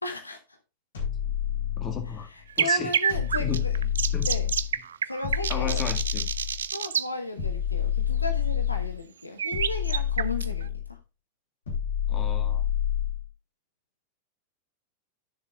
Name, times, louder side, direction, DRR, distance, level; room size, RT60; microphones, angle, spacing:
voice 1, 0.0-0.6 2.1-3.8 4.2-4.5 5.1-5.9 6.7-11.0, left 2 dB, 80° left, 1.0 m, -35 dB
sound 1, 0.9-2.3 3.1-4.7 5.2-6.6 7.4-9.0 9.5-10.9 11.7-13.3, left 9 dB, 65° left, 3.6 m, -28 dB
voice 2, 1.8-2.3 2.6-2.9 3.4-3.6 4.1-4.3 5.5-6.3 12.1-12.6, left 6 dB, 25° left, 1.8 m, -34 dB
sound 2, 2.5-7.1 9.4-10.6, right 8 dB, 65° right, 0.4 m, -28 dB
12.5 x 6.9 x 2.3 m
figure-of-eight pair, 90°, 0 cm